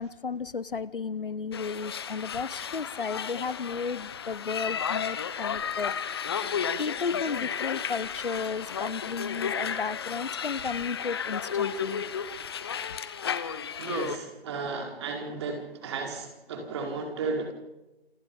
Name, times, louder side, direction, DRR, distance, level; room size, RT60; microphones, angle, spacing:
voice 1, 0.0-5.9 6.8-12.0, left 5 dB, 60° left, 20 dB, 0.9 m, -34 dB
sound 1, 1.5-14.2, left 7 dB, 25° left, 1.0 m, -33 dB
voice 2, 13.8-17.5, right 4 dB, 25° right, 2 dB, 4.5 m, -34 dB
28.5 x 25.0 x 5.5 m, 1.0 s
figure-of-eight pair, 155°, 31 cm